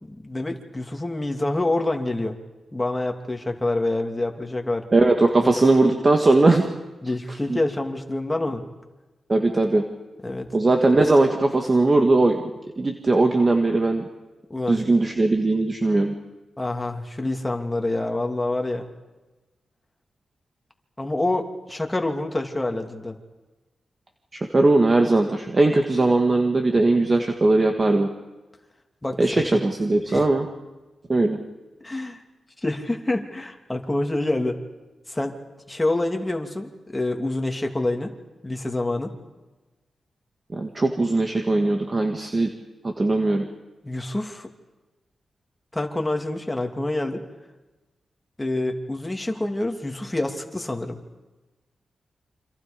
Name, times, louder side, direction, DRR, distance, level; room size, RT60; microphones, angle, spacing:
voice 1, 0.0-2.4 2.7-4.8 5.4-5.5 7.0-8.7 10.2-10.5 14.5-14.8 16.6-18.9 21.0-23.2 29.0-29.4 30.1-30.3 31.8-32.2 32.6-34.6 35.1-35.3 35.7-38.1 38.4-39.1 43.8-44.5 45.7-47.2 48.4-51.0, left 2 dB, 15° left, 3 dB, 2.8 m, -27 dB
voice 2, 4.9-6.6 7.5-7.6 9.3-9.8 10.5-12.4 12.8-14.0 14.7-16.1 24.3-28.1 29.2-30.5 31.1-31.4 40.5-42.5 42.8-43.5, right 2 dB, 30° right, 4 dB, 1.9 m, -19 dB
28.5 x 26.5 x 5.3 m, 1.1 s
wide cardioid pair, 110°, 0 cm